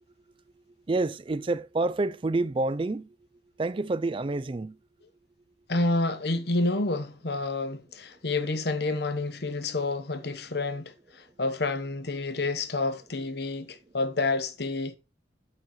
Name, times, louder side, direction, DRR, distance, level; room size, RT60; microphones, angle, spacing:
voice 1, 0.9-3.2 3.6-4.8 8.9-9.0 10.4-10.6 12.2-12.3 13.6-13.7, right 2 dB, 25° right, 0.4 m, -28 dB
voice 2, 5.7-15.0, left 2 dB, 55° left, 1.0 m, -29 dB
8.6 x 8.5 x 3.1 m
head